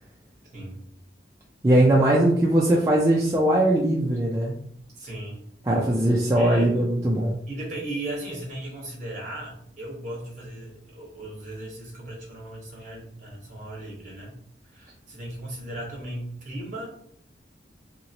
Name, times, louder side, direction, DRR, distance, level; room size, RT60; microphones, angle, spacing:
voice 1, 0.5-0.8 4.9-5.4 6.4-6.7 7.5-14.3 14.6-16.9, right 1 dB, 45° right, -2 dB, 1.1 m, -36 dB
voice 2, 1.6-4.5 5.7-7.4, right 1 dB, 15° right, -3 dB, 0.3 m, -20 dB
2.9 x 2.9 x 2.8 m, 0.66 s
head